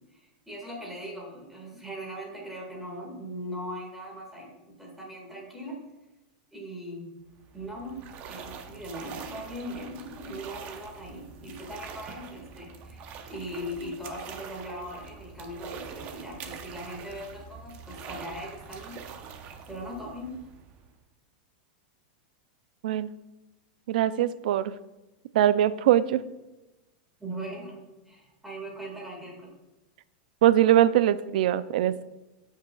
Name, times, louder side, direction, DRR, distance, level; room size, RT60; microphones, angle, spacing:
voice 1, 0.1-4.5 4.8-5.8 6.5-7.1 7.5-19.0 19.7-20.4 27.2-27.8 28.1-29.5, equal, 5° right, -2 dB, 1.9 m, -39 dB
sound 1, 7.3-21.0, right 6 dB, 35° right, 0.8 m, -44 dB
voice 2, 23.9-24.7 25.3-26.2 30.4-32.0, right 12 dB, 65° right, 15 dB, 0.4 m, -22 dB
14.0 x 5.5 x 2.3 m, 1.0 s
supercardioid pair, 165°, 5 cm